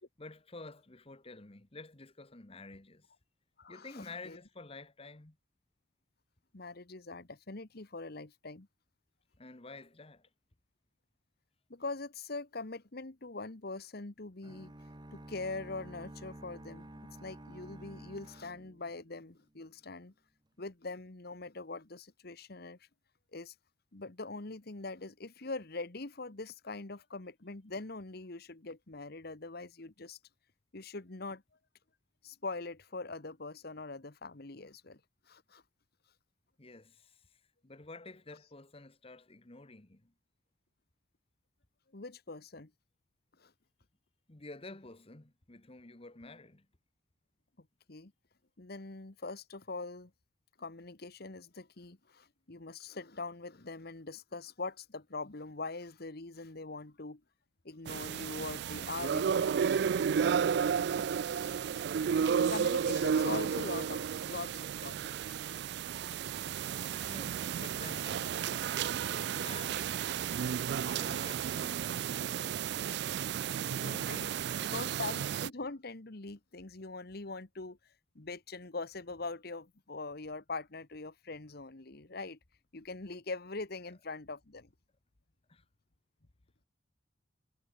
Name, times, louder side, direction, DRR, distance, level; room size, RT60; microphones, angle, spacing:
voice 1, 0.2-3.1 3.7-5.4 9.4-10.3 36.6-37.4 37.6-40.1 44.3-46.7 62.2-62.5 67.1-68.4 69.1-69.9 70.9-72.3 73.8-75.0 85.5-85.6, left 3 dB, 30° left, 1.3 m, -50 dB
voice 2, 3.6-4.4 6.5-8.7 11.7-14.7 15.1-16.9 17.2-20.1 20.6-22.8 23.3-23.5 23.9-30.2 30.7-31.4 32.2-35.0 35.3-35.6 41.9-42.7 43.4-43.5 47.9-48.1 48.6-50.1 50.6-57.2 57.6-59.9 62.3-65.4 72.4-72.5 73.7-74.3 74.7-77.8 78.1-82.4 82.7-84.7, left 3 dB, 55° left, 1.4 m, -42 dB
sound 1, 14.4-19.4, right 1 dB, 25° right, 1.5 m, -50 dB
sound 2, 57.9-75.5, right 7 dB, 60° right, 0.3 m, -33 dB
head